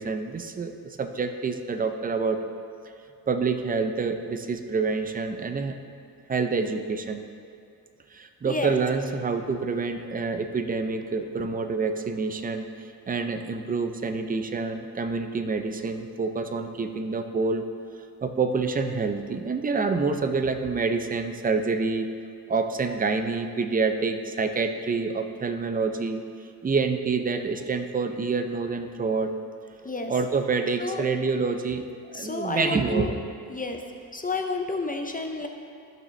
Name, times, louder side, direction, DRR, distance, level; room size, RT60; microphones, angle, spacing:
voice 1, 0.0-2.5 3.3-5.8 6.3-7.3 8.1-17.6 18.2-22.1 22.5-29.4 30.1-33.1, right 4 dB, 20° right, 7 dB, 0.5 m, -27 dB
voice 2, 32.1-33.1 33.5-33.8 34.1-35.5, left 3 dB, 20° left, 3 dB, 0.6 m, -30 dB
15.0 x 5.9 x 3.2 m, 2.4 s
cardioid pair, 115°, 39 cm